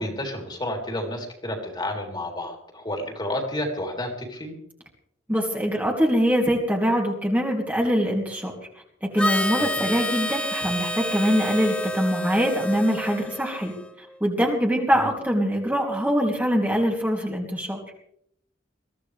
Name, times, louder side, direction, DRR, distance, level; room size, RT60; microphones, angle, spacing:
voice 1, 0.0-4.6 9.6-9.7, left 1 dB, 25° left, 1 dB, 3.6 m, -30 dB
voice 2, 5.3-8.5 9.0-13.7 14.0-17.8, equal, 10° right, -1 dB, 2.9 m, -23 dB
Harmonica, 9.2-13.9, left 1 dB, 5° left, 1.0 m, -29 dB
22.5 x 16.0 x 3.4 m, 0.68 s
head